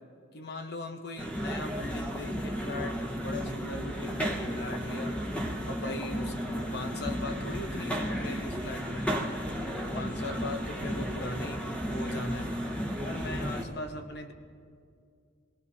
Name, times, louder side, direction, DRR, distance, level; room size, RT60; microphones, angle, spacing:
voice 1, 0.3-5.2 5.6-9.1 9.7-12.6 13.0-14.3, left 2 dB, 50° left, 5 dB, 1.0 m, -39 dB
sound 1, 1.2-13.6, equal, 5° left, 1.2 m, -33 dB
25.0 x 18.0 x 2.8 m, 2.3 s
head